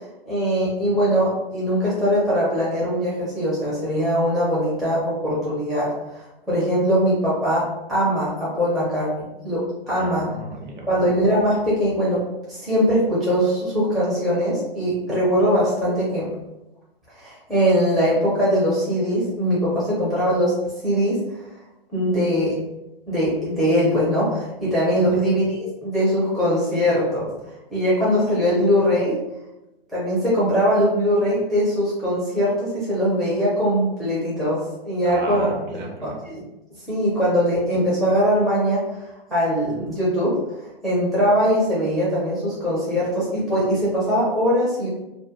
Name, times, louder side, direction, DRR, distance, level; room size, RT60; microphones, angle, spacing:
voice 1, 0.3-10.3 10.9-12.2 12.5-16.3 17.2-20.6 20.8-21.2 21.9-22.6 23.1-27.3 27.7-29.2 29.9-35.5 36.0-36.4 36.9-38.9 39.3-40.4 40.8-44.9, equal, ahead, -10 dB, 0.4 m, -21 dB
voice 2, 9.9-11.0 35.0-36.2, right 1 dB, 50° right, 0 dB, 0.8 m, -34 dB
2.2 x 2.1 x 2.8 m, 0.93 s
hypercardioid pair, 130°, 30 cm